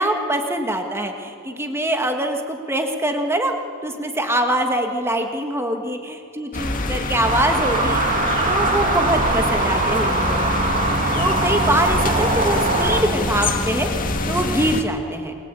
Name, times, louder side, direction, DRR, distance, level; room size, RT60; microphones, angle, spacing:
voice 1, 0.0-3.5 3.8-10.4 11.2-13.9 14.3-15.3, right 1 dB, 10° right, 4 dB, 2.0 m, -23 dB
sound 1, 6.5-14.8, left 2 dB, 40° left, 2.0 m, -25 dB
sound 2, 7.2-13.0, right 3 dB, 40° right, 2.4 m, -22 dB
28.0 x 22.5 x 8.5 m, 2.7 s
head